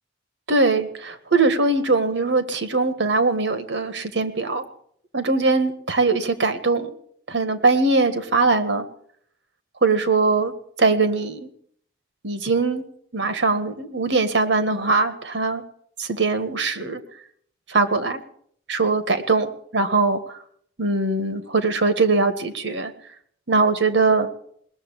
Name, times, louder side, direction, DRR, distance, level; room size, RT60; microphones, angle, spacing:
voice 1, 0.5-4.6 5.1-6.9 7.3-8.8 9.8-10.5 10.8-11.5 12.2-12.8 13.1-15.6 16.0-17.0 17.7-18.2 18.7-20.4 20.8-22.9 23.5-24.3, right 3 dB, 80° right, 10 dB, 1.7 m, -21 dB
19.5 x 7.2 x 10.0 m, 0.65 s
head